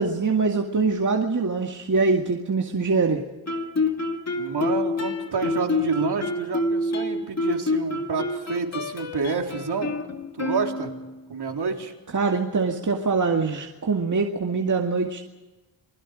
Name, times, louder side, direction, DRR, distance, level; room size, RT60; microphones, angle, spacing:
voice 1, 0.0-3.2 12.1-15.2, right 4 dB, 40° right, 1 dB, 2.1 m, -23 dB
Guitar, 3.5-11.2, left 3 dB, 35° left, 2.6 m, -28 dB
voice 2, 4.3-9.9 10.4-10.9 11.3-11.9, right 5 dB, 60° right, 2 dB, 3.9 m, -28 dB
29.0 x 21.5 x 5.1 m, 1.1 s
cardioid pair, 75°, 44 cm